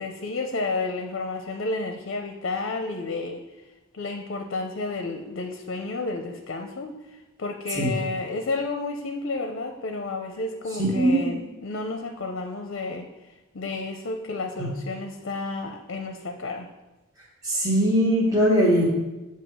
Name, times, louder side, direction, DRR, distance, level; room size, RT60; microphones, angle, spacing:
voice 1, 0.0-3.4 3.9-13.1 13.5-16.7, left 3 dB, 60° left, 4 dB, 0.5 m, -31 dB
voice 2, 10.8-11.3 14.6-14.7 17.4-18.8, right 1 dB, 15° right, -6 dB, 1.3 m, -21 dB
8.1 x 2.8 x 6.0 m, 1.1 s
head